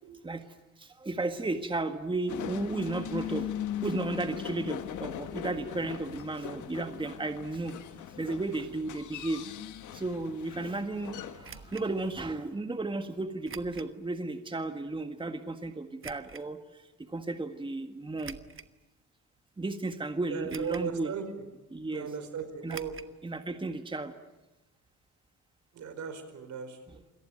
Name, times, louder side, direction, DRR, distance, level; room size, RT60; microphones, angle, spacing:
voice 1, 0.8-3.5 3.8-7.8 8.2-9.4 9.9-18.4 19.6-21.1 21.7-22.1 22.6-22.8 23.2-24.1, right 2 dB, 15° right, 7 dB, 1.7 m, -34 dB
sound 1, 2.3-12.3, left 10 dB, 75° left, 1.6 m, -40 dB
sound 2, 11.4-11.9 13.4-13.9 14.5-14.6 16.0-16.5 18.2-18.8 19.4-19.5 20.5-21.0 21.2-21.3 22.7-23.1 23.4-23.5 23.8-23.9, right 6 dB, 45° right, 1.4 m, -46 dB
voice 2, 20.3-21.5 21.9-22.9 25.7-27.0, right 7 dB, 70° right, 9 dB, 4.8 m, -37 dB
28.0 x 18.5 x 9.1 m, 1.1 s
cardioid pair, 90°, 30 cm